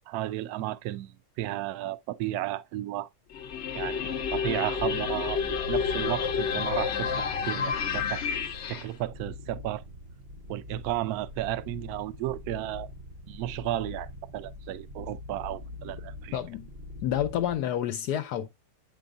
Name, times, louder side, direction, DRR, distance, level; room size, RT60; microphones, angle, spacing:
voice 1, 0.1-3.1 3.7-8.2 8.7-9.8 10.5-12.9 13.3-16.4, right 14 dB, 70° right, 1.0 m, -33 dB
sound 1, 3.3-8.8, left 6 dB, 60° left, 0.7 m, -30 dB
sound 2, 4.8-17.6, left 2 dB, 45° right, 0.7 m, -43 dB
voice 2, 16.3-16.7 17.0-18.5, left 10 dB, 75° left, 1.1 m, -29 dB
7.8 x 5.3 x 2.4 m
omnidirectional pair, 1.8 m